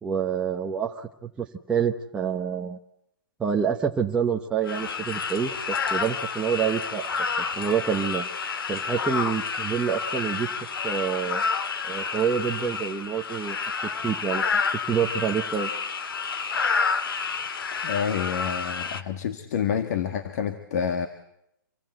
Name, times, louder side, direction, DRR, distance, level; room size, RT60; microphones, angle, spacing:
voice 1, 0.0-2.8 3.4-7.1 7.6-8.2 8.7-10.5 10.8-11.4 11.8-13.6 14.0-14.6 14.9-15.7, right 7 dB, 10° right, 0 dB, 0.9 m, -27 dB
sound 1, 4.6-19.0, left 5 dB, 90° left, 1.9 m, -29 dB
voice 2, 17.8-21.1, left 7 dB, 50° left, 7 dB, 1.8 m, -28 dB
27.0 x 20.0 x 7.9 m, 0.77 s
hypercardioid pair, 165°, 12 cm